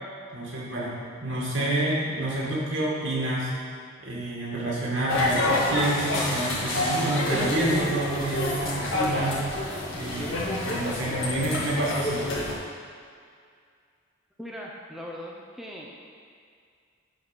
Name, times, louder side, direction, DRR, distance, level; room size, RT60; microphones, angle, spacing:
voice 1, 0.3-0.9 1.2-3.5 4.0-9.5 9.9-12.2, right 1 dB, 65° right, -5 dB, 2.2 m, -28 dB
sound 1, 5.1-12.5, left 2 dB, 80° left, 1.9 m, -28 dB
voice 2, 14.4-15.9, equal, ahead, -3 dB, 0.7 m, -39 dB
9.0 x 4.2 x 6.2 m, 2.2 s
head